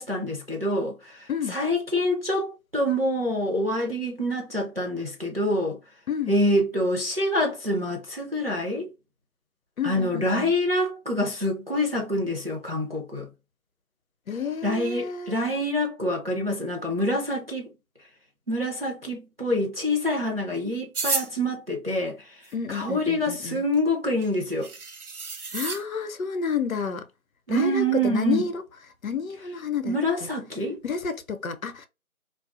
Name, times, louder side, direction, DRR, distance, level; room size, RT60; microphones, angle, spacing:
voice 1, 0.0-5.8 6.3-8.9 9.8-13.3 14.6-17.7 18.5-22.3 22.7-24.7 27.5-28.5 29.8-30.8, left 1 dB, 45° right, 0.5 m, -26 dB
voice 2, 9.8-10.5 14.3-15.4 22.5-23.6 25.5-27.0 27.5-28.5 29.0-30.0 30.8-31.9, left 6 dB, 70° left, 0.6 m, -30 dB
sound 1, 20.9-21.3 23.8-23.9 24.2-24.3 24.6-25.8, right 4 dB, 80° right, 0.7 m, -30 dB
2.3 x 2.3 x 2.5 m
figure-of-eight pair, 165°, 43 cm